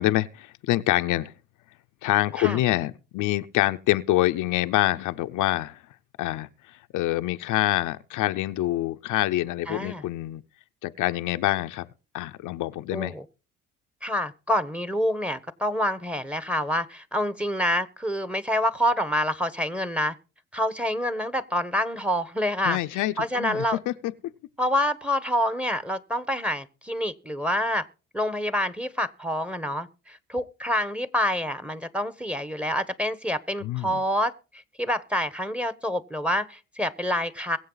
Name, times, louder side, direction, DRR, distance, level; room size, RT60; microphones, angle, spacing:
voice 1, 0.0-1.3 2.0-5.8 6.2-10.4 10.8-11.9 12.1-13.1 22.6-24.3 33.6-34.0, left 16 dB, 90° left, 0.7 m, -26 dB
voice 2, 9.7-10.0 12.9-13.2 14.0-20.1 20.5-22.8 23.2-23.8 24.6-27.9 28.1-37.6, equal, 5° right, 1.2 m, -27 dB
22.5 x 7.9 x 4.0 m
cardioid pair, 90°, 30 cm